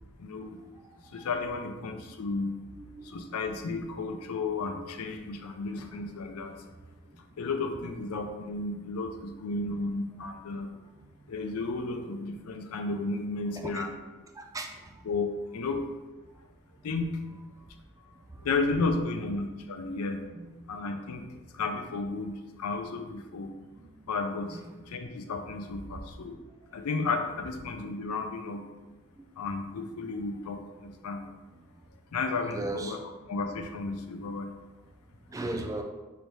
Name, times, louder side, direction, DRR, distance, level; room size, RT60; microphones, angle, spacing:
voice 1, 0.2-0.6 1.1-2.6 3.0-6.5 7.4-10.7 11.3-14.0 15.0-15.9 16.8-17.2 18.4-20.2 20.7-21.3 21.5-23.5 24.1-24.6 24.9-26.4 26.7-28.6 29.4-31.3 32.1-33.0 33.3-34.5, left 3 dB, 90° left, 5 dB, 0.5 m, -33 dB
voice 2, 2.8-3.1 13.7-13.8 14.4-14.7 19.9-20.0 20.4-20.5 23.8-24.0 32.5-33.0 35.3-35.8, right 2 dB, 15° right, 3 dB, 0.3 m, -36 dB
3.2 x 2.7 x 4.5 m, 1.2 s
head